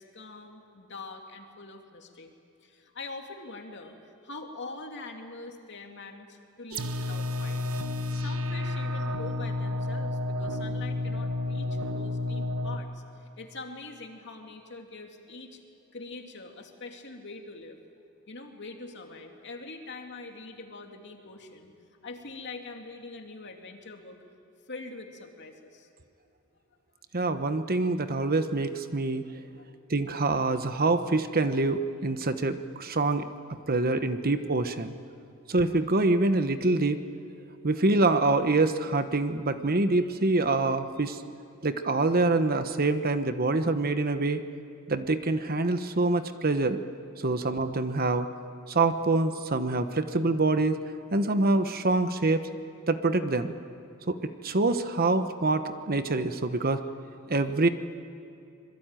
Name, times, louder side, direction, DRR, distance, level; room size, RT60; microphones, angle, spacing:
voice 1, 0.0-2.3 2.6-15.6 15.9-17.8 18.3-21.7 22.0-24.2 24.7-25.9 29.6-29.7 47.4-47.5, left 3 dB, 55° left, 3 dB, 2.7 m, -44 dB
sound 1, 6.7-12.8, left 2 dB, 80° right, 1.3 m, -31 dB
voice 2, 27.1-29.2 29.9-33.3 33.7-34.9 35.5-37.0 37.6-41.2 41.6-44.4 44.9-46.8 47.2-48.3 48.7-50.8 51.1-52.5 52.9-53.5 54.1-54.2 54.4-56.8 57.3-57.7, right 2 dB, 45° right, 9 dB, 1.1 m, -25 dB
26.0 x 21.5 x 9.1 m, 2.6 s
head